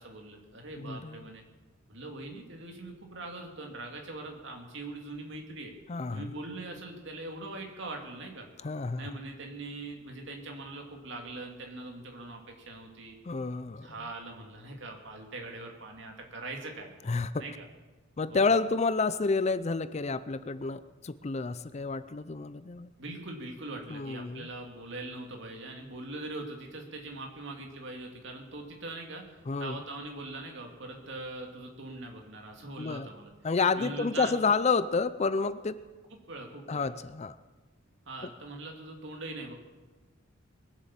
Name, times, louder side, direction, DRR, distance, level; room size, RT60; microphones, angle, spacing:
voice 1, 0.0-1.4 1.9-5.7 6.1-8.5 9.0-13.2 13.8-16.9 17.4-17.6 18.3-18.6 23.0-29.2 29.6-33.3 33.8-34.4 36.1-36.9 38.1-39.5, right 2 dB, 60° right, 2 dB, 2.6 m, -42 dB
voice 2, 0.8-1.3 5.9-6.3 8.6-9.1 13.3-13.9 17.1-17.4 18.2-22.9 23.9-24.5 29.5-29.8 32.8-33.1 33.4-35.8 36.7-37.4, left 4 dB, 30° left, 14 dB, 0.4 m, -29 dB
21.5 x 8.3 x 7.5 m, 1.3 s
head